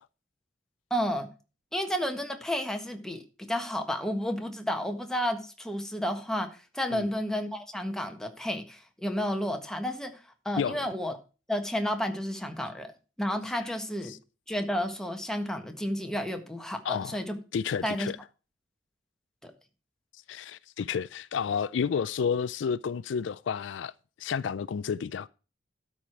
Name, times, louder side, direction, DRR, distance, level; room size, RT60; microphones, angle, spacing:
voice 1, 0.9-1.3 1.7-10.2 10.4-11.1 11.5-12.9 13.2-14.1 14.5-17.4 17.8-18.1 19.4-19.5, equal, 5° left, 1.5 m, -31 dB
voice 2, 16.8-17.2 17.5-18.2 20.3-23.9 24.2-25.3, left 6 dB, 75° left, 0.4 m, -31 dB
12.5 x 5.0 x 5.9 m
head